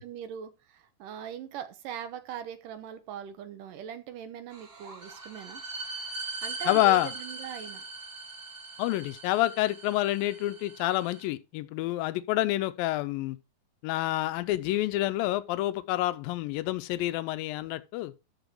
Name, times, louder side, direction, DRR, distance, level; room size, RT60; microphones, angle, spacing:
voice 1, 0.0-5.6 6.4-7.8, right 9 dB, 70° right, 2.4 m, -41 dB
sound 1, 4.5-11.3, right 3 dB, 35° right, 3.0 m, -41 dB
voice 2, 6.7-7.1 8.8-13.4 13.8-18.1, left 16 dB, 80° left, 2.4 m, -28 dB
13.5 x 4.5 x 4.6 m
omnidirectional pair, 4.2 m